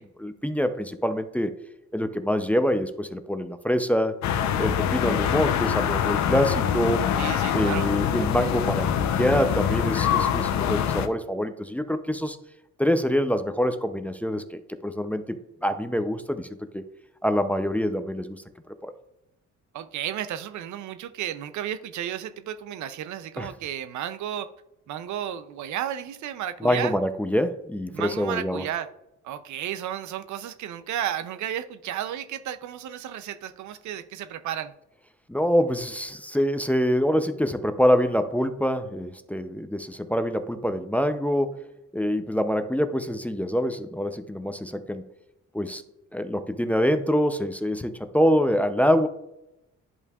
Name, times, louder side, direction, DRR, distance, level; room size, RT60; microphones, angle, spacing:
voice 1, 0.2-1.5 1.9-4.2 4.6-7.0 7.5-12.4 12.8-16.5 16.7-16.8 17.2-18.4 18.8-18.9 23.4-23.5 26.6-28.6 35.3-41.6 41.9-45.1 45.5-45.8 46.1-49.1, equal, 5° left, 0.5 m, -25 dB
sound 1, 4.2-11.1, left 9 dB, 65° left, 0.7 m, -24 dB
voice 2, 7.2-7.9 19.7-24.5 24.9-26.9 27.9-28.9 29.2-34.7, right 10 dB, 70° right, 0.5 m, -33 dB
10.5 x 5.4 x 2.4 m
cardioid pair, 90°, 30 cm